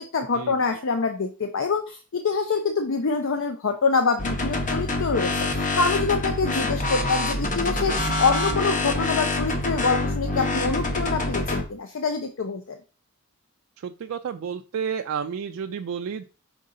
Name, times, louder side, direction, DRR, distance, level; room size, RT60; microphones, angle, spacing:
voice 1, 0.0-12.8, left 4 dB, 60° left, 6 dB, 0.5 m, -25 dB
sound 1, 4.2-11.6, left 2 dB, 35° left, 0.9 m, -26 dB
voice 2, 13.8-16.2, right 7 dB, 65° right, 6 dB, 0.3 m, -31 dB
5.3 x 4.8 x 3.7 m, 0.36 s
head